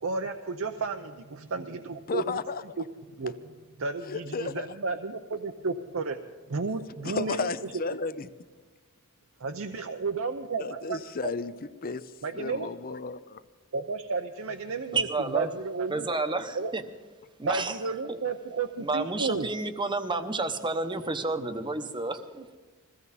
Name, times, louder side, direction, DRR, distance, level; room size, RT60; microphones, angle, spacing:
voice 1, 0.0-2.4 2.8-2.9 3.2-3.3 3.8-6.2 6.5-7.5 9.4-11.3 12.2-12.7 13.7-15.1 15.3-16.1 16.6-16.7 17.4-19.5, right 4 dB, 65° right, 6 dB, 0.7 m, -32 dB
voice 2, 2.1-2.6 4.0-4.7 7.0-8.3 10.6-13.4, left 4 dB, 40° left, 14 dB, 0.6 m, -33 dB
voice 3, 14.9-15.5 15.9-16.8 17.4-17.8 18.1-18.2 18.8-22.6, right 3 dB, 20° right, 8 dB, 0.9 m, -30 dB
21.5 x 16.0 x 4.1 m, 1.3 s
head